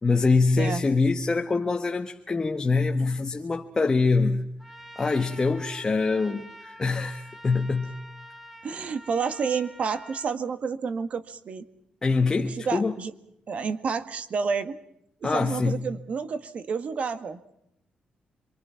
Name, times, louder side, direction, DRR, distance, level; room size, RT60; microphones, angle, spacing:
voice 1, 0.0-4.4 5.0-8.0 12.0-12.9 15.2-15.8, left 4 dB, 25° left, 1.3 m, -24 dB
Trumpet, 4.6-10.3, equal, 5° right, 1.9 m, -46 dB
voice 2, 8.6-11.6 12.6-13.1 13.5-14.8 15.2-17.5, right 5 dB, 50° right, 1.7 m, -30 dB
27.0 x 24.5 x 5.8 m
cardioid pair, 115°, 3 cm